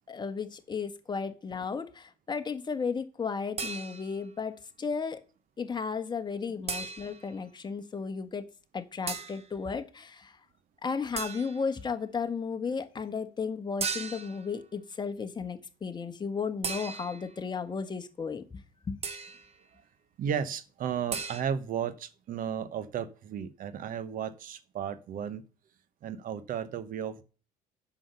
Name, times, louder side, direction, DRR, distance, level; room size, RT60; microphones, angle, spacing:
voice 1, 0.1-5.2 5.6-8.5 8.7-10.4 10.8-18.4 18.9-19.0, left 5 dB, 25° left, 8 dB, 1.3 m, -34 dB
sound 1, 3.6-4.3 6.7-7.3 9.1-9.5 11.2-11.7 13.8-14.5 16.6-17.4 19.0-19.5 21.1-21.4, right 5 dB, 40° right, 1.3 m, -36 dB
voice 2, 20.2-25.4 26.0-27.2, right 8 dB, 60° right, 15 dB, 1.0 m, -34 dB
7.8 x 6.3 x 6.8 m, 0.36 s
cardioid pair, 95°, 16 cm